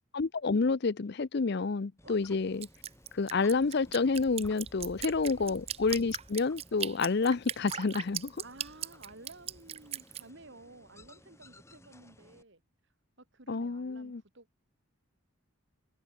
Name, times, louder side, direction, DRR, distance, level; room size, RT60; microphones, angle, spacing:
voice 1, 0.1-2.7 3.1-8.4 13.5-14.2, left 4 dB, 50° left, 0.5 m, -29 dB
sound 1, 2.0-12.4, left 1 dB, 10° left, 6.4 m, -56 dB
Drip, 2.6-10.2, right 10 dB, 25° right, 0.4 m, -38 dB
voice 2, 4.8-5.6 8.4-12.6 13.3-14.6, right 2 dB, 55° right, 2.4 m, -53 dB
head